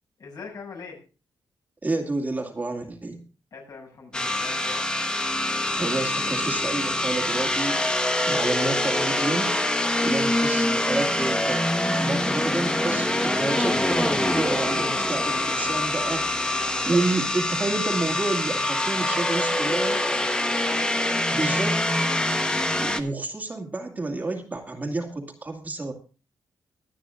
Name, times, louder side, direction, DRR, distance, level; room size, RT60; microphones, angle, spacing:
voice 1, 0.2-1.0 3.5-5.0 10.5-11.0 16.2-17.1 18.8-22.4, left 4 dB, 55° left, 1 dB, 6.7 m, -42 dB
voice 2, 1.8-3.2 5.8-9.5 10.0-11.6 12.0-16.6 16.9-20.0 21.3-21.7 22.8-25.9, right 2 dB, 20° right, 3 dB, 2.3 m, -29 dB
sound 1, 4.1-23.0, left 1 dB, 10° left, 1.2 m, -25 dB
23.5 x 9.5 x 2.4 m, 0.34 s
wide cardioid pair, 135°, 8 cm